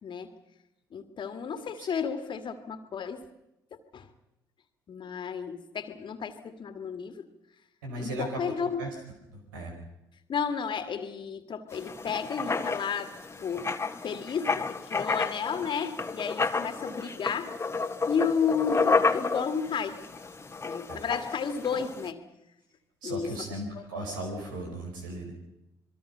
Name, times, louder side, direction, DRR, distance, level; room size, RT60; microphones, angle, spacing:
voice 1, 0.0-0.3 0.9-3.2 3.7-4.1 4.9-7.3 8.0-8.9 10.3-17.5 18.1-20.0 20.6-22.2 23.0-23.4 23.7-23.8, left 6 dB, 50° left, 9 dB, 2.1 m, -32 dB
voice 2, 7.8-8.5 8.8-8.9 9.3-9.7 20.9-21.0 23.0-25.3, right 1 dB, 90° right, 2 dB, 4.8 m, -36 dB
Writing, 11.7-22.1, left 4 dB, 25° left, 1.6 m, -31 dB
27.0 x 21.5 x 5.6 m, 0.89 s
hypercardioid pair, 55°, 10 cm